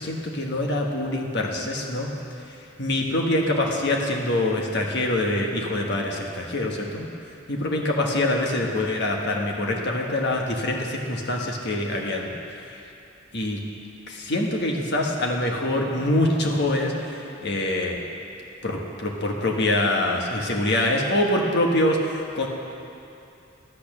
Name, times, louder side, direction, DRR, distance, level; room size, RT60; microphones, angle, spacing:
voice 1, 0.0-2.1 2.8-7.1 7.5-12.3 12.6-12.7 13.3-13.6 14.1-18.0 18.6-22.5, left 1 dB, 55° left, 0 dB, 1.3 m, -25 dB
11.5 x 8.7 x 6.1 m, 2.7 s
head